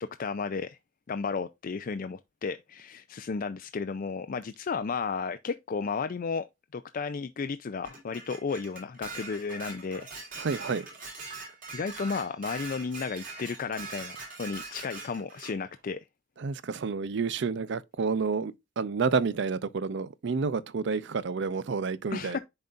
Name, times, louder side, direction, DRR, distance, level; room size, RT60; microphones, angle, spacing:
voice 1, 0.0-0.8 1.1-6.5 6.7-10.1 11.7-16.0 22.1-22.4, left 5 dB, 45° left, 0.4 m, -33 dB
Dishes pots and pans, 7.8-15.6, right 3 dB, 45° right, 3.4 m, -42 dB
voice 2, 10.4-10.9 16.4-22.4, right 5 dB, 65° right, 0.5 m, -29 dB
10.5 x 4.0 x 2.4 m
head